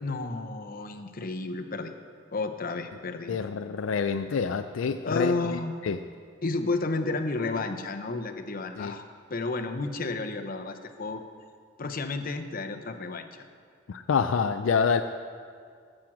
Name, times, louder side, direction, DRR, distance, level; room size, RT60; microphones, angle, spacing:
voice 1, 0.0-1.9 2.3-3.4 5.0-5.7 6.4-9.0 9.3-11.2 11.8-13.3, left 3 dB, 45° left, 6 dB, 0.8 m, -31 dB
voice 2, 3.3-6.0 8.8-9.0 13.9-15.0, left 5 dB, 75° left, 8 dB, 0.4 m, -27 dB
13.5 x 7.6 x 6.1 m, 2.2 s
head